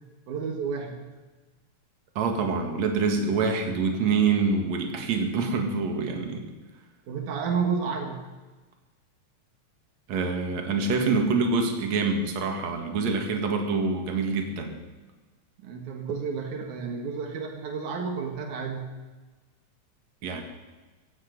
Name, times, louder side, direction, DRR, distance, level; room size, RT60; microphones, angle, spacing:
voice 1, 0.3-1.1 7.1-8.3 15.6-18.8, right 5 dB, 85° right, 3 dB, 3.0 m, -31 dB
voice 2, 2.2-6.5 10.1-14.8 20.2-20.4, right 4 dB, 65° right, 4 dB, 3.1 m, -26 dB
16.5 x 16.0 x 5.3 m, 1.2 s
omnidirectional pair, 3.4 m